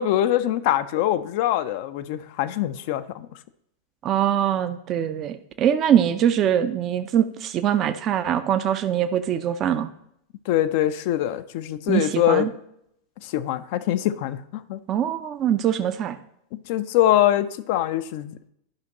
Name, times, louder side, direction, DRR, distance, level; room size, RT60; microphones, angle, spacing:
voice 1, 0.0-3.3 10.5-12.5 13.2-14.8 16.5-18.4, left 12 dB, 50° left, 0.4 m, -23 dB
voice 2, 4.0-9.9 11.9-12.5 14.9-16.2, right 10 dB, 35° right, 0.4 m, -23 dB
11.5 x 5.7 x 2.8 m
figure-of-eight pair, 90°, 0 cm